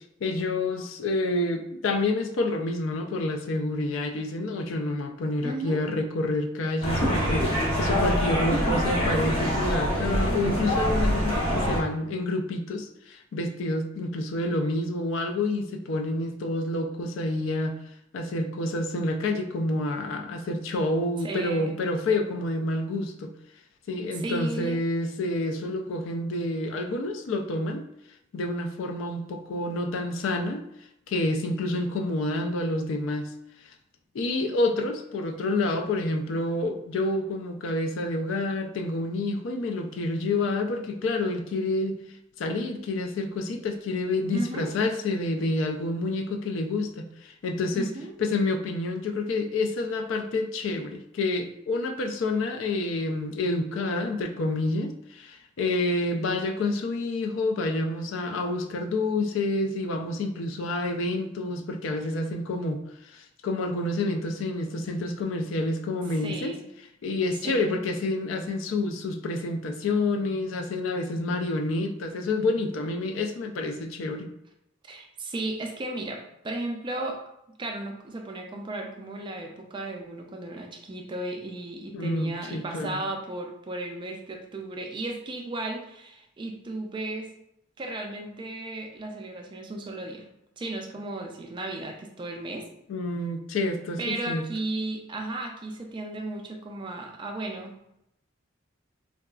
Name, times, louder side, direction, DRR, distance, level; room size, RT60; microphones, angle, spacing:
voice 1, 0.2-17.8 18.1-23.3 23.9-27.8 28.3-30.7 31.1-33.3 34.1-42.0 42.4-47.9 48.2-66.6 67.0-74.3 81.9-83.0 92.9-94.4, left 2 dB, 75° left, 5 dB, 0.3 m, -28 dB
voice 2, 5.4-5.9 8.5-8.8 21.2-21.7 24.1-24.8 44.3-44.7 47.7-48.1 66.2-66.7 67.4-67.9 74.8-77.2 77.6-87.3 87.8-90.3 90.6-92.7 94.0-97.7, right 2 dB, 25° right, 2 dB, 0.4 m, -35 dB
sound 1, 6.8-11.8, equal, 30° left, 0.8 m, -25 dB
3.7 x 2.3 x 2.3 m, 0.81 s
head